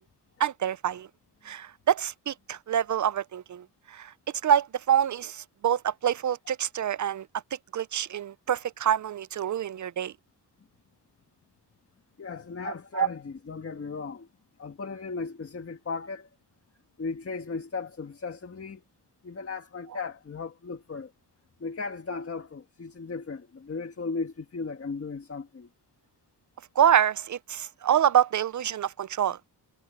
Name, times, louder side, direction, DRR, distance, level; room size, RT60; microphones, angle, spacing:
voice 1, 0.4-1.1 1.5-4.1 4.4-7.3 7.7-10.1 12.6-13.1 26.8-29.4, right 9 dB, 45° right, 0.4 m, -26 dB
voice 2, 12.2-14.3 14.6-16.3 17.0-18.8 19.2-21.1 21.6-25.7, left 4 dB, 30° left, 1.6 m, -36 dB
wide cardioid pair, 130°, 43 cm